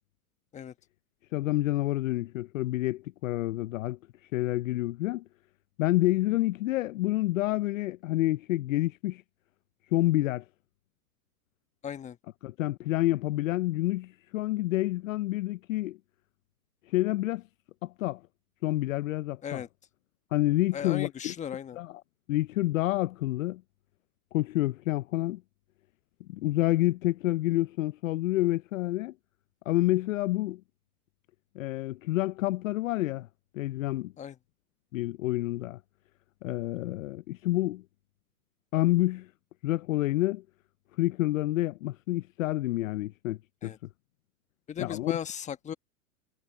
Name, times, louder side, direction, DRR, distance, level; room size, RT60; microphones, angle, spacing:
voice 1, 1.3-4.0 4.3-5.2 5.8-9.2 9.9-10.4 12.4-16.0 16.9-17.4 17.8-18.2 18.6-19.6 20.3-21.3 21.8-22.0 22.3-23.6 24.3-25.4 26.3-29.1 29.7-30.6 31.6-33.3 33.5-34.1 34.9-35.8 36.4-37.8 38.7-39.3 39.6-40.4 41.0-43.7 44.8-45.1, left 17 dB, 60° left, 0.6 m, -28 dB
voice 2, 11.8-12.2 19.4-19.7 20.7-21.8 34.2-34.4 43.6-43.8 44.7-45.7, left 8 dB, 15° left, 1.3 m, -36 dB
hypercardioid pair, 125°, 45 cm